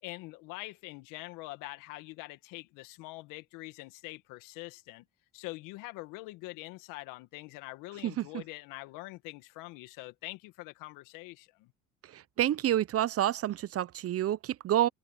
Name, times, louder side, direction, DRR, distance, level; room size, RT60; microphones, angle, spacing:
voice 1, 0.0-5.0 5.3-11.7, left 21 dB, 75° left, 2.0 m, -44 dB
voice 2, 12.1-14.9, right 12 dB, 45° right, 0.8 m, -28 dB
supercardioid pair, 70°, 32 cm